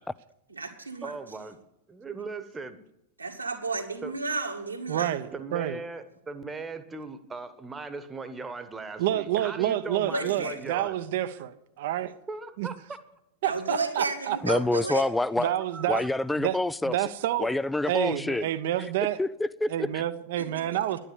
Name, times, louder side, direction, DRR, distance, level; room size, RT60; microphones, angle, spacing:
voice 1, 0.5-1.1 3.2-5.1 10.1-10.6 13.4-15.0 20.4-21.0, right 3 dB, 80° right, 2.0 m, -32 dB
voice 2, 1.0-1.6 1.9-2.8 4.0-4.1 5.3-10.9 12.3-13.0 15.7-15.9, right 4 dB, 15° right, 1.2 m, -38 dB
voice 3, 4.9-5.8 9.0-12.1 12.6-12.7 13.4-14.4 15.4-16.0 16.4-16.6 16.8-17.5 17.8-19.2 19.7-21.0, right 12 dB, 55° right, 0.8 m, -28 dB
voice 4, 14.4-15.5 15.9-16.9 17.4-18.5 19.2-19.7, left 2 dB, 5° left, 0.4 m, -27 dB
11.0 x 10.0 x 8.4 m
figure-of-eight pair, 90°, 0 cm